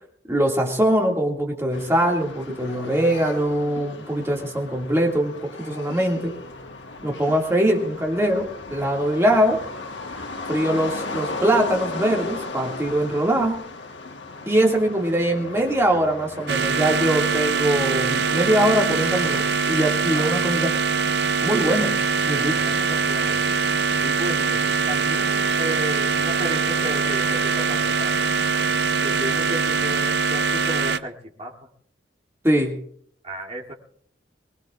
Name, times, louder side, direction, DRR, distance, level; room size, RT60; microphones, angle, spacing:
voice 1, 0.3-6.3 7.0-9.6 10.5-13.6 14.5-20.8 21.4-22.0 22.3-22.5 32.4-32.8, right 1 dB, 15° right, 0 dB, 2.2 m, -22 dB
sound 1, 1.7-19.4, left 3 dB, 75° left, 1.4 m, -36 dB
sound 2, 16.5-31.0, right 5 dB, 60° right, 0.6 m, -23 dB
voice 2, 22.3-23.6 24.0-31.7 33.2-33.7, equal, 30° right, -3 dB, 2.8 m, -34 dB
23.5 x 20.0 x 2.5 m, 0.65 s
head